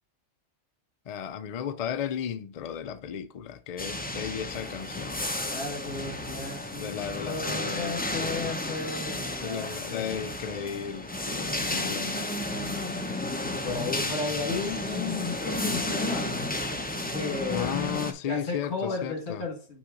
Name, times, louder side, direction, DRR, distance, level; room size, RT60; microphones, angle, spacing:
voice 1, 1.1-5.2 6.8-8.5 9.4-12.3 13.7-14.3 17.5-19.4, left 8 dB, 80° left, 0.3 m, -35 dB
sound 1, 3.8-18.1, left 2 dB, 10° left, 0.4 m, -32 dB
voice 2, 5.5-10.1 11.6-12.0 12.5-16.6 17.0-17.7 18.3-19.8, left 3 dB, 55° left, 1.9 m, -35 dB
6.0 x 4.4 x 3.7 m
omnidirectional pair, 1.3 m